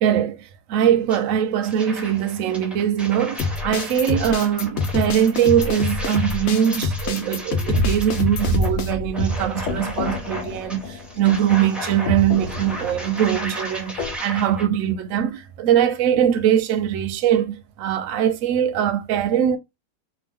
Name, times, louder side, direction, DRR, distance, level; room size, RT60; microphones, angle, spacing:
voice 1, 0.0-19.6, right 10 dB, 70° right, 0.8 m, -21 dB
sound 1, 1.1-1.2 1.6-14.7, equal, ahead, 0.4 m, -36 dB
sound 2, 3.4-8.9, left 4 dB, 65° left, 0.9 m, -26 dB
sound 3, 7.7-11.7 12.1-14.2, equal, 80° left, 1.3 m, -28 dB
2.9 x 2.4 x 3.3 m
omnidirectional pair, 1.7 m